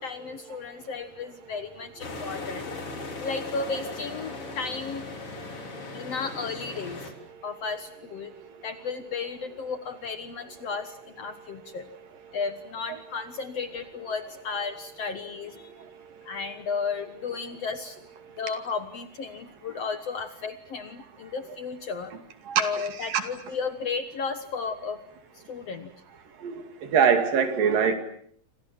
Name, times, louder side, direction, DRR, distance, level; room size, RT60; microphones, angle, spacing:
voice 1, 0.0-2.7 3.2-5.0 5.9-7.1 7.4-8.3 8.6-11.9 12.3-15.7 16.2-18.0 18.4-22.1 22.6-25.0 25.3-25.9, left 5 dB, 55° left, 9 dB, 1.9 m, -34 dB
sound 1, 2.0-7.1, left 3 dB, 40° left, 4.3 m, -38 dB
voice 2, 22.5-23.2 26.4-27.9, right 7 dB, 70° right, 8 dB, 4.1 m, -24 dB
28.5 x 26.0 x 7.5 m, 0.65 s
omnidirectional pair, 4.2 m